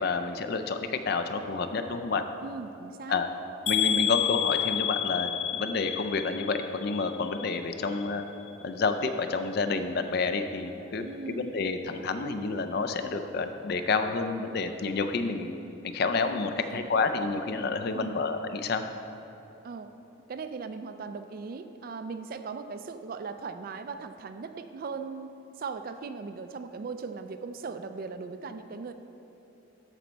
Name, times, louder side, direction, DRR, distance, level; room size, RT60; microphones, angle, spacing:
voice 1, 0.0-2.2 3.1-3.3 3.7-8.2 8.6-15.5 15.8-18.8, left 4 dB, 50° left, 8 dB, 0.4 m, -29 dB
voice 2, 2.4-3.2 11.0-11.5 16.6-16.9 17.9-18.3 19.6-19.9 20.3-25.3 25.6-28.9, right 4 dB, 45° right, 9 dB, 0.3 m, -38 dB
sound 1, 3.7-7.6 7.9-8.5 9.0-9.1 9.5-9.6, left 9 dB, 75° left, 1.0 m, -30 dB
13.0 x 4.4 x 4.0 m, 3.0 s
head